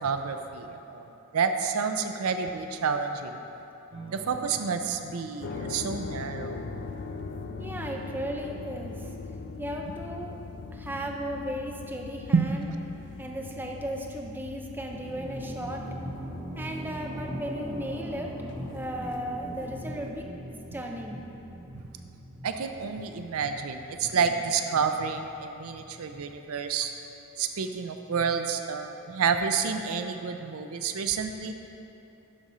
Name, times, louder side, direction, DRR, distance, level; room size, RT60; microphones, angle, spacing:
voice 1, 0.0-3.4 4.1-6.6 12.3-12.5 22.4-26.9 27.4-31.5, right 6 dB, 75° right, 7 dB, 0.5 m, -29 dB
sound 1, 3.9-13.0 14.4-15.0, right 2 dB, 55° right, 1.7 m, -53 dB
sound 2, 5.4-20.3, left 4 dB, 50° left, 0.4 m, -41 dB
voice 2, 7.6-9.1 9.6-10.4 10.7-12.7 13.2-15.8 16.5-18.3 18.7-20.3 20.7-21.2, equal, 10° right, 1 dB, 0.5 m, -35 dB
sound 3, 14.9-26.4, right 1 dB, 35° right, 1.7 m, -41 dB
11.5 x 4.2 x 4.9 m, 2.9 s
head